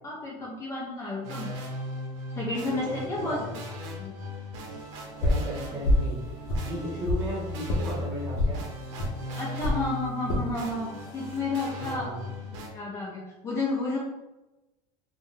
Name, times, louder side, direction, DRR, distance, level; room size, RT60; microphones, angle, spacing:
voice 1, 0.0-1.5 2.3-3.4 4.0-4.1 9.3-12.1 12.5-14.0, left 2 dB, 20° left, -5 dB, 0.4 m, -31 dB
sound 1, 1.2-12.7, equal, 80° right, 0.7 m, -38 dB
voice 2, 2.7-3.6 5.2-6.2 6.6-8.6 11.7-12.3, equal, 25° right, -4 dB, 0.9 m, -35 dB
sound 2, 5.2-5.5 5.8-6.1 6.5-7.3 7.7-7.8 8.4-8.6 9.0-9.1 9.6-9.8 10.3-10.5 11.0-11.4, left 1 dB, 55° left, 0.7 m, -25 dB
2.5 x 2.1 x 3.6 m, 1.0 s
cardioid pair, 175°, 15 cm